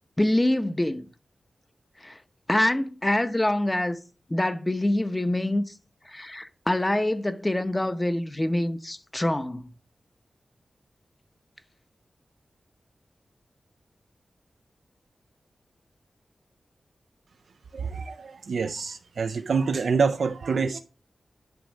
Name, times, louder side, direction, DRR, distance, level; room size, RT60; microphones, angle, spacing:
voice 1, 0.2-1.1 2.0-2.2 2.5-4.0 4.3-5.6 6.1-9.7, left 1 dB, 15° left, 0.7 m, -25 dB
voice 2, 17.7-20.8, right 5 dB, 80° right, 0.5 m, -26 dB
10.5 x 3.7 x 6.3 m
wide cardioid pair, 130°, 0 cm